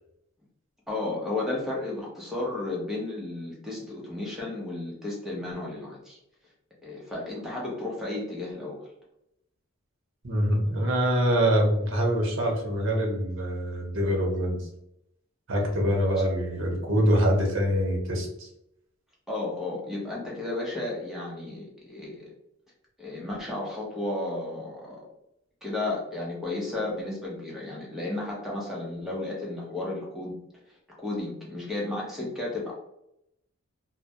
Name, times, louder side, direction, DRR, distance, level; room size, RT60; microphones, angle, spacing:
voice 1, 0.9-6.2 6.8-8.8 16.1-16.2 19.3-22.3 23.0-25.0 25.6-30.4 31.0-32.7, left 2 dB, ahead, -5 dB, 0.6 m, -33 dB
voice 2, 10.2-14.7 15.5-18.5, equal, 70° right, 0 dB, 0.7 m, -25 dB
2.1 x 2.1 x 2.7 m, 0.81 s
head